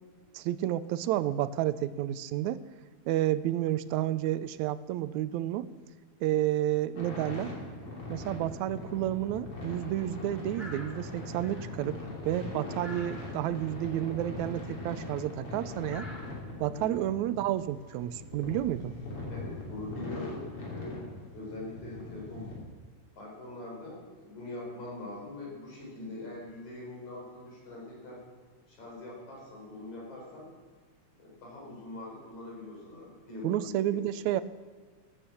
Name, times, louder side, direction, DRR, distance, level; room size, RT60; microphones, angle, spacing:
voice 1, 0.3-2.6 3.1-5.7 6.2-7.5 8.1-12.0 12.3-16.1 16.6-18.9 33.4-34.4, right 13 dB, 80° right, 15 dB, 1.9 m, -30 dB
sound 1, 6.9-22.5, left 2 dB, 50° left, 4.4 m, -41 dB
sound 2, 10.5-11.0 11.4-11.7 12.8-13.3 15.2-15.4 15.9-16.5 18.8-18.9, left 1 dB, ahead, 3.4 m, -46 dB
voice 2, 19.3-21.1 21.3-22.6 23.2-28.2 28.7-30.5 31.2-34.0, left 2 dB, 75° left, -2 dB, 6.0 m, -43 dB
17.5 x 10.0 x 7.1 m, 1.5 s
omnidirectional pair, 3.3 m